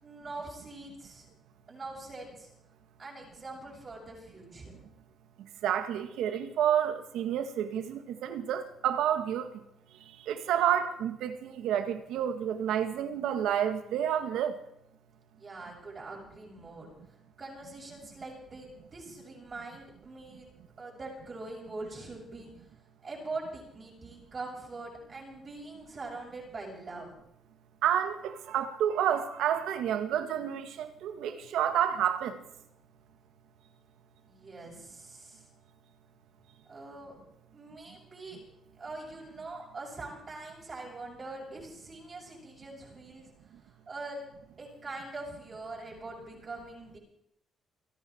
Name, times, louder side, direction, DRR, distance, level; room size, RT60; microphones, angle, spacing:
voice 1, 0.0-1.3 1.7-2.5 3.0-4.7 15.4-16.9 17.4-20.5 20.8-22.5 23.0-27.1 34.3-35.5 36.7-37.2 37.5-38.4 38.8-43.3 43.9-44.2 44.6-47.0, right 2 dB, 35° right, -3 dB, 6.7 m, -43 dB
voice 2, 5.4-9.5 10.1-14.6 27.8-32.4, right 9 dB, 85° right, 9 dB, 1.9 m, -29 dB
29.5 x 10.0 x 4.6 m, 0.74 s
cardioid pair, 90°, 0 cm